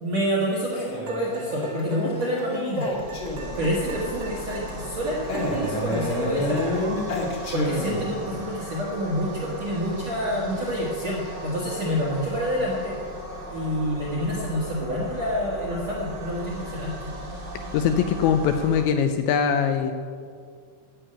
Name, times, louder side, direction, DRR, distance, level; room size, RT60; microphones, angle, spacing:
voice 1, 0.0-2.9 3.6-6.7 7.5-13.0 13.5-17.1, equal, 55° right, -4 dB, 1.9 m, -28 dB
Male speech man speaking, 0.7-3.7 5.3-8.3, left 1 dB, 50° left, 1.5 m, -29 dB
sound 1, 1.1-7.1, right 2 dB, 40° right, 1.5 m, -40 dB
sound 2, 2.8-18.8, equal, 85° right, 0.6 m, -37 dB
voice 2, 17.7-19.9, left 7 dB, 80° left, 7 dB, 2.7 m, -22 dB
13.5 x 7.0 x 8.9 m, 2.1 s
omnidirectional pair, 5.6 m